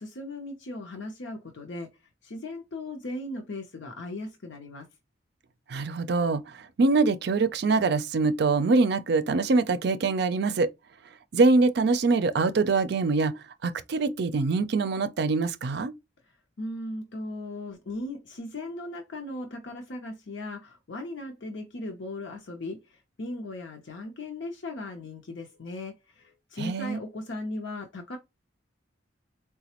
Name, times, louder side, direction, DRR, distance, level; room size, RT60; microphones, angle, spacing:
voice 1, 0.0-1.9 2.2-4.9 16.3-28.2, left 2 dB, 85° left, 0.7 m, -37 dB
voice 2, 5.7-6.4 6.8-10.7 11.3-13.4 13.6-15.9 26.6-27.0, right 3 dB, 65° right, 0.5 m, -24 dB
4.0 x 2.2 x 2.9 m
head